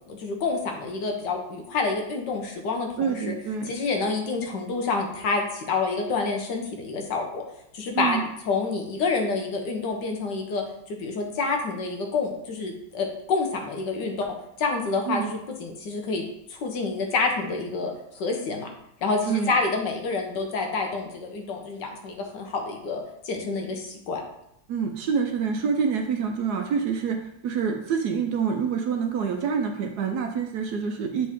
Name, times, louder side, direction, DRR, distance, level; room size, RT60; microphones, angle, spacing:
voice 1, 0.1-3.3 3.7-7.4 7.7-8.2 8.5-18.7 19.0-24.2, left 4 dB, 70° left, 2 dB, 1.6 m, -28 dB
voice 2, 3.0-3.7 7.9-8.2 15.1-15.3 19.3-19.6 24.7-31.3, right 6 dB, 70° right, 4 dB, 1.1 m, -26 dB
7.4 x 4.3 x 3.5 m, 0.77 s
omnidirectional pair, 2.0 m